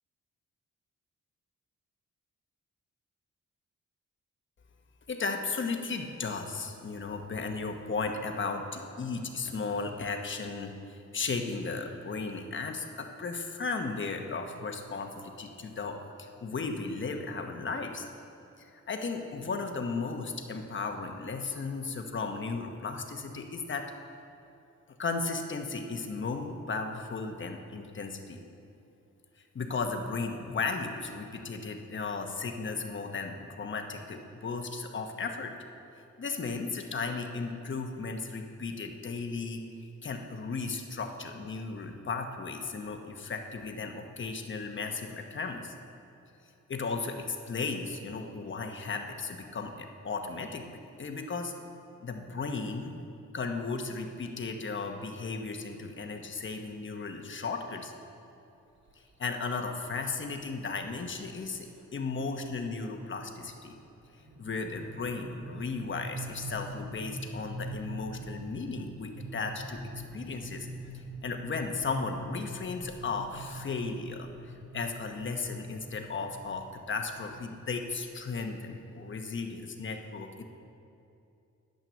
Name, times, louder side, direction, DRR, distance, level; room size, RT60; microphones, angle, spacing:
voice 1, 5.1-18.1 18.9-23.9 25.0-28.4 29.5-35.5 36.2-45.7 46.7-50.7 51.0-51.5 52.0-52.9 53.3-57.9 59.2-63.7 64.4-69.8 70.1-70.7 70.9-80.4, left 4 dB, 40° left, 4 dB, 1.1 m, -35 dB
sound 1, 58.9-59.1 60.0-60.1 60.5-60.6 60.9-61.2 61.6-78.0, right 1 dB, 65° right, 1.8 m, -44 dB
10.0 x 9.2 x 7.0 m, 2.7 s
wide cardioid pair, 120°, 29 cm